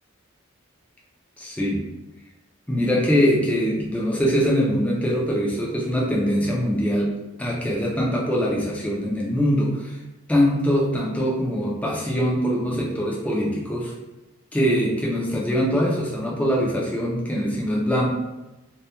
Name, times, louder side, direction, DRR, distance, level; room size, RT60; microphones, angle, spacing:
voice 1, 1.4-1.8 2.7-10.0 10.3-13.9 14.5-18.1, equal, 5° left, -4 dB, 0.3 m, -23 dB
2.1 x 2.1 x 2.8 m, 1.1 s
head